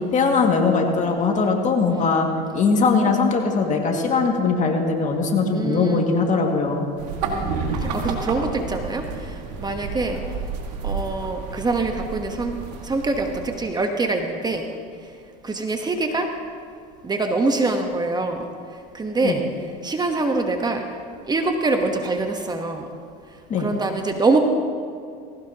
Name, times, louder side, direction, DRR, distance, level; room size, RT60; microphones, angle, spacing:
voice 1, 0.1-2.3 2.5-6.9 19.2-19.4 23.5-23.7, left 4 dB, 35° left, 2 dB, 2.2 m, -20 dB
voice 2, 5.5-6.1 7.2-10.2 10.8-14.7 15.4-16.4 17.0-18.5 18.9-19.5 19.8-20.9 21.3-22.9 23.6-24.4, right 3 dB, 20° right, 4 dB, 1.2 m, -24 dB
sound 1, 7.0-13.6, right 4 dB, 80° right, 2.0 m, -30 dB
19.0 x 17.0 x 3.0 m, 2.3 s
supercardioid pair, 95°, 21 cm